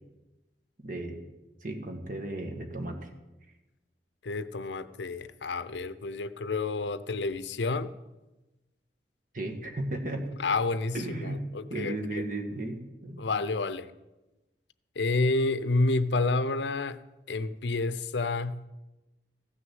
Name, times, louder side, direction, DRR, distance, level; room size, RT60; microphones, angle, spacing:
voice 1, 0.8-1.2 1.6-3.1 9.3-10.3 10.9-13.2, right 1 dB, 50° right, 5 dB, 1.7 m, -35 dB
voice 2, 4.2-7.9 10.4-12.2 13.2-13.9 15.0-17.0 17.3-18.6, left 3 dB, 85° left, 14 dB, 0.6 m, -29 dB
15.0 x 6.3 x 7.7 m, 1.0 s
head